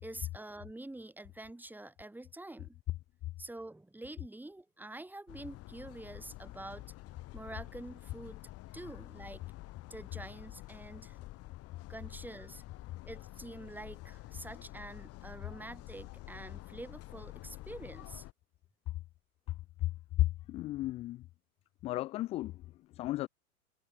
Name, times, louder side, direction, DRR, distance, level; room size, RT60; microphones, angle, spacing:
voice 1, 0.0-2.8 3.4-6.8 7.3-8.4 8.7-9.4 9.9-11.2 11.9-12.6 13.0-18.2, right 2 dB, 5° right, 4.4 m, -47 dB
Fort Lauderdale Café, 5.3-18.3, left 18 dB, 35° left, 4.3 m, -49 dB
voice 2, 20.2-21.3 21.8-23.3, left 16 dB, 15° left, 0.5 m, -33 dB
figure-of-eight pair, 95°, 44 cm